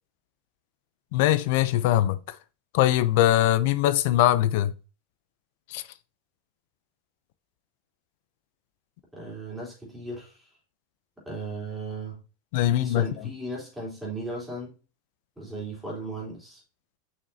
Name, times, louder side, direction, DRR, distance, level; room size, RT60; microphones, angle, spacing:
voice 1, 1.1-2.4 2.7-4.7 5.7-5.8 12.5-13.1, left 13 dB, 60° left, 0.5 m, -22 dB
voice 2, 9.1-10.5 11.2-12.2 12.7-14.7 15.4-16.6, right 2 dB, 5° right, 3.4 m, -36 dB
6.5 x 5.9 x 2.7 m
supercardioid pair, 145°, 0 cm